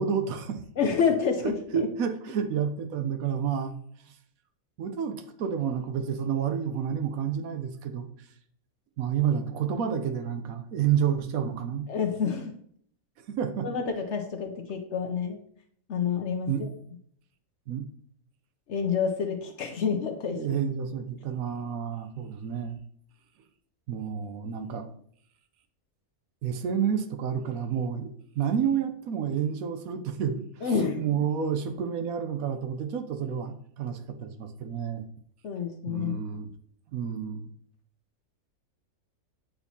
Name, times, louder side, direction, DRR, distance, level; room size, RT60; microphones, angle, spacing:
voice 1, 0.0-0.6 1.4-3.7 4.8-8.1 9.0-11.9 13.3-13.7 16.5-16.7 17.7-17.9 20.4-22.8 23.9-24.9 26.4-35.0 35.9-36.5 36.9-37.5, right 8 dB, 70° right, 8 dB, 1.0 m, -30 dB
voice 2, 0.8-1.9 11.9-12.5 13.6-15.4 15.9-16.7 18.7-20.4 30.6-31.1 35.4-36.2, left 6 dB, 60° left, 4 dB, 0.8 m, -28 dB
7.9 x 4.4 x 2.7 m, 0.63 s
omnidirectional pair, 1.6 m